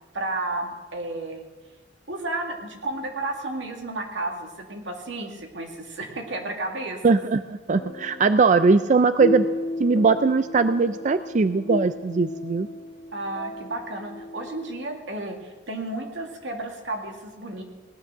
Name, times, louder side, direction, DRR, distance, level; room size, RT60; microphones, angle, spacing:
voice 1, 0.1-1.5 2.1-7.2 13.1-17.6, right 2 dB, 85° right, 2 dB, 2.3 m, -32 dB
voice 2, 7.0-9.5 9.8-12.7, right 4 dB, 45° right, 11 dB, 0.4 m, -20 dB
sound 1, 7.8-14.8, left 1 dB, 80° left, 1.9 m, -34 dB
18.0 x 10.0 x 6.6 m, 1.2 s
head